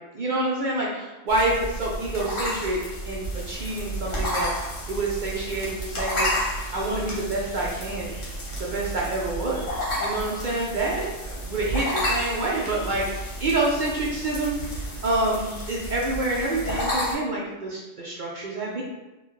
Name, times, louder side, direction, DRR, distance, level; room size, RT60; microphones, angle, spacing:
voice 1, 0.1-2.8 3.1-4.5 4.9-6.3 6.7-8.2 8.6-9.7 10.0-18.8, right 2 dB, 55° right, -4 dB, 0.6 m, -27 dB
sound 1, 1.3-17.1, equal, 85° left, 1.4 m, -31 dB
3.8 x 2.4 x 3.1 m, 1.0 s
omnidirectional pair, 1.3 m